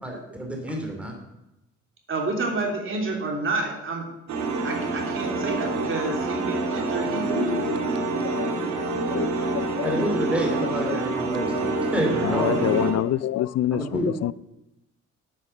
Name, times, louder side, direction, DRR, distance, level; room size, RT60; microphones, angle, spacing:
voice 1, 0.0-1.1 9.8-12.5 13.7-14.1, equal, 5° right, 2.8 m, -28 dB
voice 2, 2.1-4.1 4.6-7.8, right 3 dB, 45° right, 3.2 m, -29 dB
sound 1, 4.3-12.9, right 3 dB, 65° right, 2.5 m, -27 dB
voice 3, 7.3-10.0 10.9-11.0 12.2-14.3, left 12 dB, 60° left, 0.5 m, -28 dB
9.0 x 8.8 x 6.6 m
cardioid pair, 90°, 30 cm